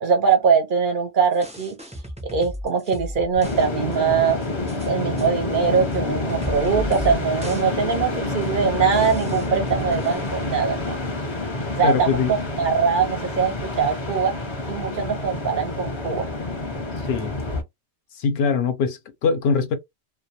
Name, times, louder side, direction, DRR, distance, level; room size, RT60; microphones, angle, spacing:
voice 1, 0.0-1.8 2.3-4.4 4.9-11.0 11.8-14.3 14.7-16.3, right 6 dB, 55° right, 0.7 m, -22 dB
sound 1, 1.3-3.7 3.9-4.0 4.4-4.9 5.2-5.3 5.9-6.0 6.3-7.2 7.4-7.6 7.9-8.0 8.4-8.5 8.9-10.3, equal, 10° right, 0.3 m, -34 dB
sound 2, 3.4-17.6, left 2 dB, 30° left, 0.6 m, -28 dB
voice 2, 11.8-12.3 17.0-17.4 18.1-19.7, left 5 dB, 70° left, 0.8 m, -22 dB
2.2 x 2.2 x 2.7 m
omnidirectional pair, 1.2 m